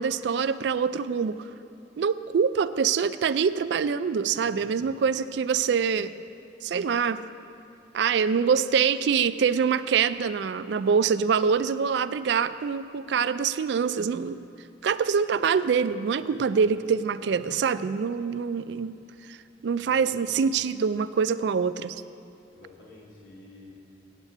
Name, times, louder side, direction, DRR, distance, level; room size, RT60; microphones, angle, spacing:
voice 1, 0.0-1.5 2.0-6.1 6.6-7.2 7.9-14.4 14.8-18.9 19.3-19.4 19.6-22.0, right 6 dB, 65° right, 13 dB, 0.3 m, -25 dB
voice 2, 4.4-4.8 16.3-16.5 19.8-20.4 22.5-23.7, left 2 dB, 70° left, -4 dB, 2.5 m, -49 dB
8.1 x 8.1 x 8.3 m, 2.6 s
head